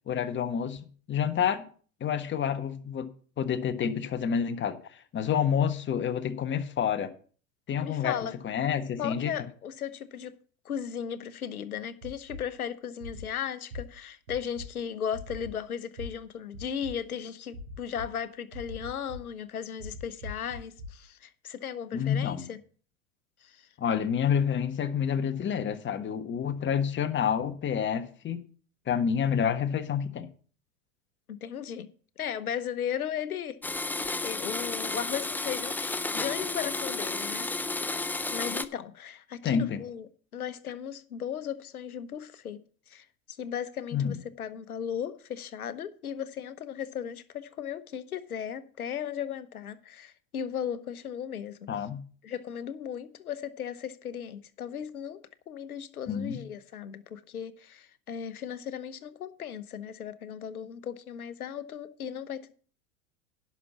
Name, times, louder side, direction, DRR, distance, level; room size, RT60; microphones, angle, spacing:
voice 1, 0.1-1.6 2.0-3.1 3.4-7.1 7.7-8.2 8.4-9.3 21.9-22.5 23.8-28.4 28.9-30.3 39.4-39.8 43.9-44.2 51.7-52.0 56.1-56.4, left 8 dB, 25° left, 1.4 m, -28 dB
voice 2, 7.8-8.4 9.0-10.4 10.6-22.6 23.4-23.7 31.3-31.9 32.2-37.5 38.3-42.6 42.9-51.6 52.2-55.2 55.5-62.5, left 8 dB, 85° left, 1.0 m, -36 dB
sound 1, 12.0-12.4 13.0-13.2 13.7-13.8 14.3-14.7 15.1-15.5 16.0-16.1 16.5-16.9 17.5-18.1 18.5-19.2 19.8-20.9, left 1 dB, 75° right, 3.1 m, -40 dB
Domestic sounds home sounds, 33.6-38.7, left 3 dB, 5° left, 0.4 m, -32 dB
11.0 x 6.0 x 7.2 m
hypercardioid pair, 85°, 43 cm